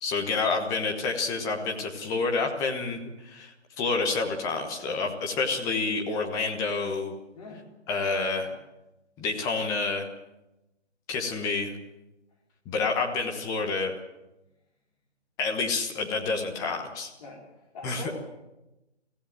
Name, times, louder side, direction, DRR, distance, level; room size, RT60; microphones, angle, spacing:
voice 1, 0.0-7.1 7.9-8.5 9.2-10.1 11.1-11.7 12.6-13.9 15.4-17.1 17.8-18.1, left 4 dB, 10° left, 2 dB, 1.2 m, -28 dB
voice 2, 17.2-18.1, left 3 dB, 35° left, -3 dB, 4.2 m, -43 dB
24.5 x 15.5 x 7.7 m, 0.98 s
figure-of-eight pair, 150°, 36 cm